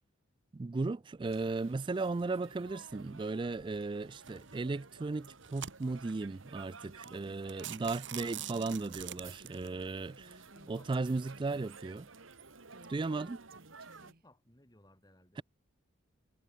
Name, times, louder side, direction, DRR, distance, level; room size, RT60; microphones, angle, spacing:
voice 1, 0.5-10.4 10.7-12.1 12.9-13.4 15.4-15.5, right 3 dB, 25° right, 0.3 m, -36 dB
sound 1, 1.2-14.1, right 4 dB, 85° right, 2.5 m, -54 dB
sound 2, 4.3-4.5 5.1-6.1 6.7-6.8 7.0-7.2 7.5-9.7, right 10 dB, 65° right, 2.6 m, -44 dB
Female speech woman speaking, 7.2-14.2, right 2 dB, 50° right, 5.3 m, -59 dB
voice 2, 9.9-11.8 13.9-15.4, left 1 dB, 20° left, 5.6 m, -64 dB
head